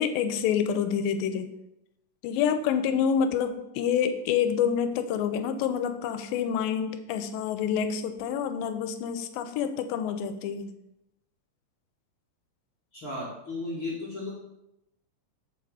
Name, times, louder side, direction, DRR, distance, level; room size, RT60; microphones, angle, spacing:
voice 1, 0.0-1.5 2.2-10.7, left 8 dB, 80° left, 9 dB, 2.2 m, -27 dB
voice 2, 12.9-14.3, left 2 dB, 60° left, -6 dB, 1.3 m, -34 dB
6.9 x 3.6 x 4.8 m, 0.86 s
omnidirectional pair, 4.1 m